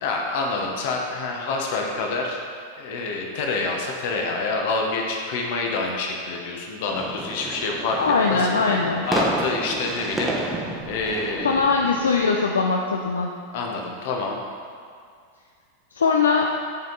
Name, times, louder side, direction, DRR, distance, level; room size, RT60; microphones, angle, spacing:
voice 1, 0.0-2.4 2.8-8.0 8.3-8.5 9.0-11.6 13.5-14.4, left 3 dB, 50° left, 1 dB, 1.0 m, -27 dB
sound 1, 6.9-12.3, right 2 dB, 10° right, 1.1 m, -30 dB
voice 2, 8.0-9.1 11.4-13.3 15.9-16.5, left 4 dB, 70° left, 1 dB, 0.5 m, -21 dB
9.1 x 5.2 x 4.0 m, 2.2 s
figure-of-eight pair, 90°, 0 cm